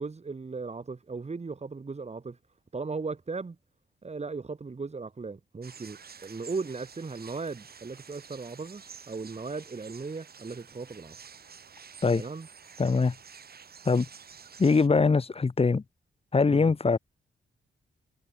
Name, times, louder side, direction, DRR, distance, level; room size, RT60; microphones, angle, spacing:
voice 1, 0.0-2.4 2.7-3.6 4.0-11.1 12.1-12.5 16.5-16.7, right 4 dB, 35° right, 6.8 m, -37 dB
sound 1, 5.6-14.9, right 6 dB, 50° right, 3.6 m, -50 dB
voice 2, 12.8-13.1 13.8-14.1 14.6-15.8 16.3-17.0, left 4 dB, 30° left, 1.3 m, -22 dB
wide cardioid pair, 115°, 20 cm